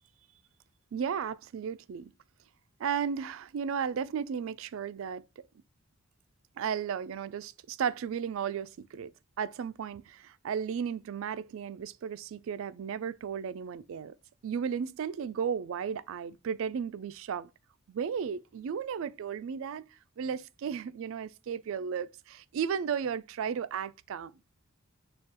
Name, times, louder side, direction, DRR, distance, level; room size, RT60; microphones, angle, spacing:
voice 1, 0.9-2.1 2.8-5.2 6.6-9.1 9.4-14.1 14.4-17.5 17.9-19.9 20.2-24.3, right 7 dB, 60° right, 0.3 m, -34 dB
6.6 x 2.3 x 2.8 m
head